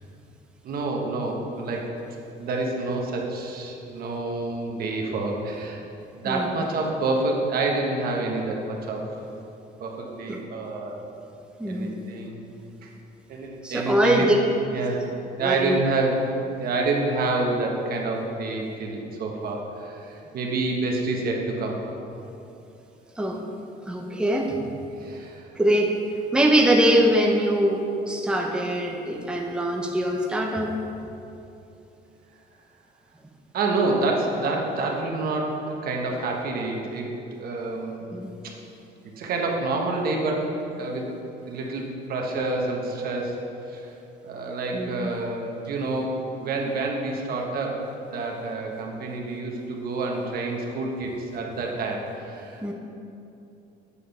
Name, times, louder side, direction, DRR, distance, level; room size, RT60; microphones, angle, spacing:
voice 1, 0.6-1.9 2.4-5.8 6.2-9.1 9.8-11.0 11.7-12.4 12.8-12.9 13.3-14.3 14.7-15.0 15.4-16.3 16.6-21.8 25.0-25.5 33.5-37.1 37.4-38.1 38.4-38.5 39.2-41.1 41.5-43.4 43.7-43.9 44.2-47.8 48.1-52.7, right 3 dB, 60° right, 0 dB, 1.3 m, -28 dB
voice 2, 11.6-11.9 13.6-14.4 15.4-15.8 23.2-23.4 23.9-24.7 25.6-25.9 26.3-30.7 38.1-38.3 44.7-45.1 52.6-52.7, right 1 dB, 5° right, 1 dB, 0.7 m, -22 dB
8.5 x 5.0 x 5.5 m, 2.8 s
cardioid pair, 110°, 17 cm